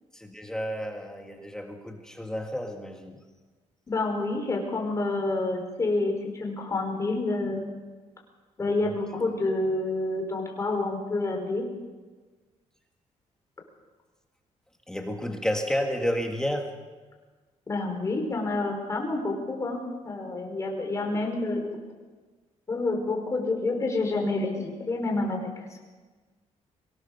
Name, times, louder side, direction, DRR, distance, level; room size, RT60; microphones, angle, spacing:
voice 1, 0.1-3.2 8.8-8.9 14.9-16.7, equal, 5° left, 3 dB, 1.8 m, -31 dB
voice 2, 3.9-7.7 8.6-11.7 17.7-21.8 22.7-25.8, left 2 dB, 25° left, 1 dB, 4.9 m, -28 dB
23.5 x 18.5 x 6.8 m, 1.3 s
cardioid pair, 150°, 12 cm